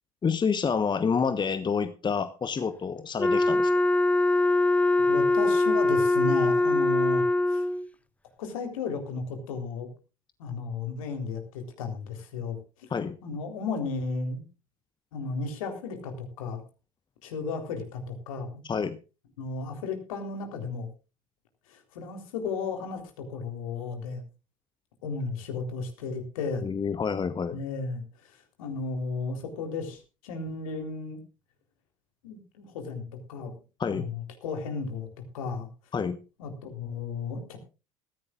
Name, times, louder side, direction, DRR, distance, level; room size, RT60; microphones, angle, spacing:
voice 1, 0.2-3.7 12.9-13.2 18.7-19.0 26.6-27.6 33.8-34.1 35.9-36.2, left 6 dB, 25° left, 12 dB, 1.2 m, -28 dB
Wind instrument woodwind instrument, 3.2-7.9, left 2 dB, 5° left, 0.7 m, -23 dB
voice 2, 5.1-7.7 8.4-9.9 10.4-12.6 13.2-14.4 15.1-16.6 17.2-18.6 19.4-20.9 21.7-24.2 25.0-26.6 27.5-31.2 32.2-33.0 33.3-33.5 33.9-35.1 35.3-35.7 36.4-37.6, left 4 dB, 70° left, 5 dB, 3.8 m, -34 dB
21.0 x 15.0 x 2.5 m, 0.33 s
figure-of-eight pair, 60°, 18 cm